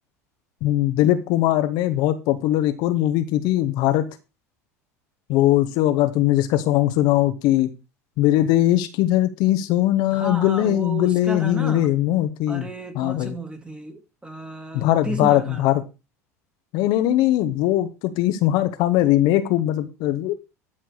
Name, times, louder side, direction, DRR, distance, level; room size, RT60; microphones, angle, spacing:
voice 1, 0.6-4.1 5.3-7.7 8.2-12.7 13.0-13.3 14.7-15.8 16.7-17.9 18.2-20.3, left 14 dB, 55° left, 1.1 m, -20 dB
voice 2, 10.1-11.9 12.5-15.7, right 1 dB, 10° right, 2.3 m, -33 dB
13.0 x 4.6 x 6.3 m
hypercardioid pair, 75°, 8 cm